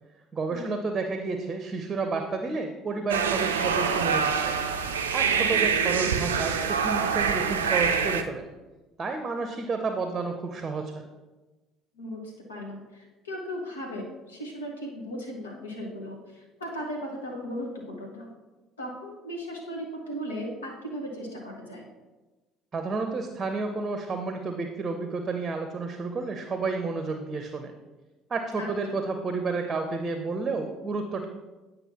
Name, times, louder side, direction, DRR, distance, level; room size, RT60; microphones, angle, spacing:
voice 1, 0.3-4.6 5.1-8.5 9.0-11.0 22.7-27.7 28.3-31.3, right 3 dB, 30° right, 5 dB, 0.6 m, -31 dB
sound 1, 3.1-8.2, right 6 dB, 80° right, 0.4 m, -25 dB
voice 2, 11.9-18.3 18.8-21.9 28.6-29.0, equal, 80° left, 0 dB, 1.2 m, -37 dB
8.9 x 5.3 x 2.9 m, 1.2 s
figure-of-eight pair, 55°, 0 cm